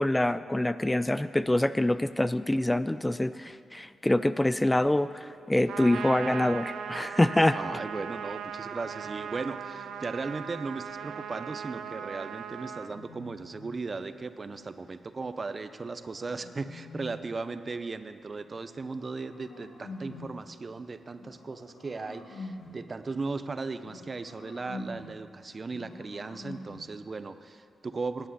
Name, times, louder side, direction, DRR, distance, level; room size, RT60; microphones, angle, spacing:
voice 1, 0.0-7.6, left 1 dB, 15° left, 14 dB, 0.4 m, -25 dB
Trumpet, 5.7-12.9, right 8 dB, 85° right, 0.5 m, -38 dB
voice 2, 7.5-28.3, right 4 dB, 45° right, 11 dB, 0.7 m, -37 dB
sound 1, 8.2-10.6 12.3-14.0 15.5-17.5 18.4-20.5 21.2-22.9 23.8-25.2 25.7-27.0, left 2 dB, 85° left, 1.3 m, -47 dB
11.5 x 8.2 x 8.4 m, 2.4 s
supercardioid pair, 55°, 0 cm